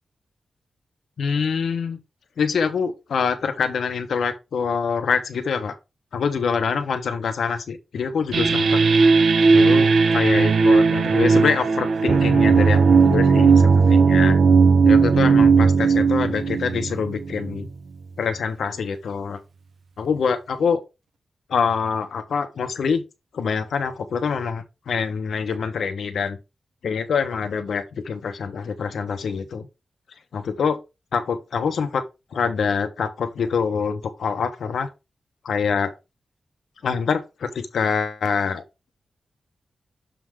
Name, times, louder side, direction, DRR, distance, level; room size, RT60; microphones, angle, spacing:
voice 1, 1.2-2.0 2.4-5.8 6.1-8.8 9.5-14.4 14.8-17.7 18.2-19.4 20.0-20.8 21.5-23.0 23.3-26.4 26.8-29.7 30.3-30.8 31.1-32.0 32.3-34.9 35.4-35.9 36.8-38.6, left 6 dB, 85° left, 1.1 m, -25 dB
sound 1, 8.3-17.7, right 4 dB, 70° right, 1.0 m, -16 dB
7.0 x 3.9 x 4.8 m
wide cardioid pair, 120°, 0 cm